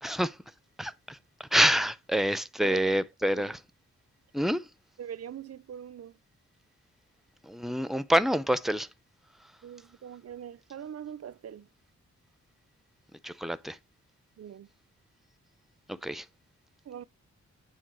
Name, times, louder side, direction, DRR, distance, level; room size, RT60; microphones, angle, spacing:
voice 1, 0.0-0.4 0.8-3.6 4.3-4.7 7.4-8.9 13.2-13.8 15.9-16.3, equal, ahead, 0.6 m, -27 dB
voice 2, 2.6-3.5 5.0-6.2 9.6-11.7 14.4-14.7 16.8-17.0, right 9 dB, 55° right, 0.6 m, -42 dB
9.0 x 3.8 x 6.2 m
wide cardioid pair, 95°, 30 cm